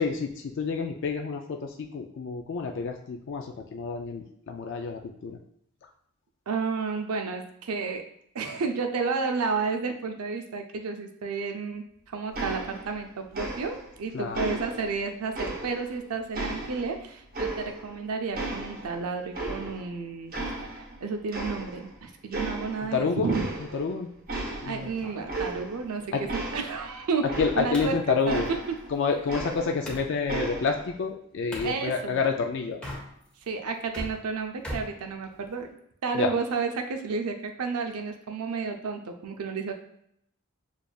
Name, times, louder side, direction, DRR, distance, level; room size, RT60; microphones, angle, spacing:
voice 1, 0.0-5.4 14.1-14.6 22.9-23.4 23.7-24.1 24.6-25.0 26.1-26.2 27.4-28.5 28.9-32.9 36.1-36.3, left 5 dB, 55° left, 4 dB, 0.3 m, -29 dB
voice 2, 6.5-8.0 8.3-23.5 24.6-26.1 26.3-27.3 27.6-28.0 28.3-28.4 31.6-32.2 33.5-35.7 36.0-39.7, right 4 dB, 85° right, 5 dB, 0.5 m, -31 dB
sound 1, 12.3-13.0 13.3-14.0 14.3-16.0 16.3-18.0 18.3-20.0 20.3-21.0 21.3-22.0 22.3-22.9 23.3-23.9 24.3-27.9 28.3-29.9 30.3-30.9, right 2 dB, 40° right, 0.8 m, -35 dB
sound 2, 24.8-30.1 31.5-31.8 32.7-33.4 33.7-35.7, equal, 5° left, 0.7 m, -41 dB
6.7 x 2.4 x 2.3 m, 0.73 s
head